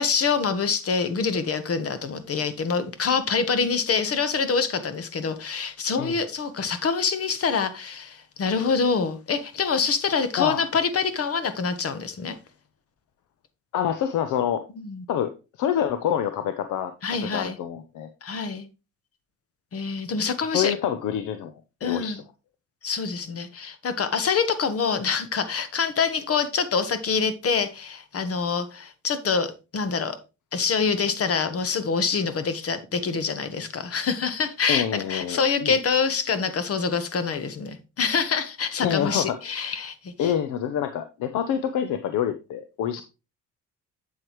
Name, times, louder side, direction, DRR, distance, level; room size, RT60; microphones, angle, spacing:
voice 1, 0.0-12.4 14.8-15.0 17.0-17.6 18.2-18.7 19.7-20.7 21.8-22.2 22.8-30.2 30.5-40.3, left 5 dB, 50° left, 1.3 m, -26 dB
voice 2, 13.7-14.6 15.1-15.3 15.6-16.9 17.3-18.1 20.5-21.5 21.8-22.2 34.7-35.8 38.8-39.4 40.2-43.0, left 9 dB, 85° left, 0.8 m, -26 dB
7.7 x 7.7 x 3.1 m
cardioid pair, 90°, 30 cm